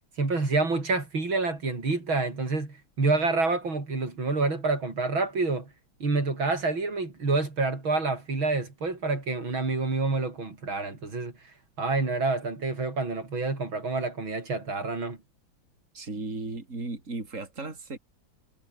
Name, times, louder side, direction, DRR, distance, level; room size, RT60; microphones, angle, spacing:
voice 1, 0.2-5.7 6.0-11.3 11.8-15.2, right 3 dB, 90° right, 6.1 m, -28 dB
voice 2, 15.9-18.0, right 3 dB, 40° right, 4.6 m, -36 dB
omnidirectional pair, 2.1 m